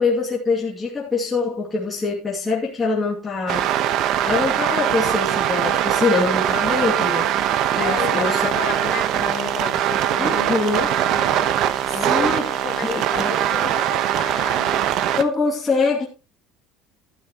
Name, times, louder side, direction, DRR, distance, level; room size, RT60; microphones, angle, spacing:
voice 1, 0.0-3.7 4.2-8.5 10.2-10.9 12.0-12.5 12.8-13.3 15.1-16.1, left 4 dB, 15° left, 2.6 m, -24 dB
sound 1, 3.5-15.2, right 11 dB, 50° right, 1.1 m, -21 dB
voice 2, 7.8-11.5 11.9-14.9, left 8 dB, 40° left, 3.1 m, -32 dB
12.5 x 12.0 x 3.1 m
cardioid pair, 160°, 0 cm